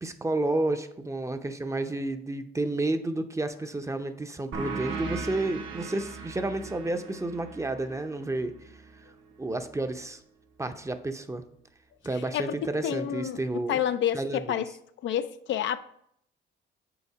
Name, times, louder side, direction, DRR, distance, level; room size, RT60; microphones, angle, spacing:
voice 1, 0.0-8.5 9.4-10.2 10.6-11.4 12.0-13.8 14.1-14.6, right 2 dB, 15° right, 0.6 m, -31 dB
sound 1, 4.5-9.7, right 4 dB, 75° right, 1.1 m, -39 dB
voice 2, 12.3-14.7 15.0-15.8, left 10 dB, 70° left, 0.5 m, -29 dB
7.0 x 4.2 x 4.7 m
cardioid pair, 90°, 20 cm